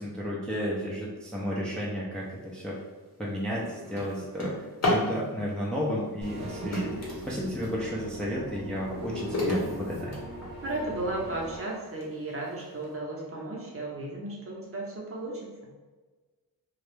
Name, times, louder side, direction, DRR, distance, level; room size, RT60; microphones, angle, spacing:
voice 1, 0.0-2.8 3.2-10.2, equal, ahead, -5 dB, 0.4 m, -33 dB
Drawer open or close, 2.5-2.7 3.2-5.1 6.2-7.8 8.3-10.8 11.4-11.5 12.0-12.1 12.5-12.8, left 1 dB, 40° left, 0.8 m, -32 dB
sound 1, 6.2-11.6, right 2 dB, 70° right, 0.8 m, -42 dB
voice 2, 10.6-15.5, right 2 dB, 35° right, -3 dB, 0.6 m, -34 dB
2.3 x 2.0 x 3.1 m, 1.3 s
wide cardioid pair, 75°, 38 cm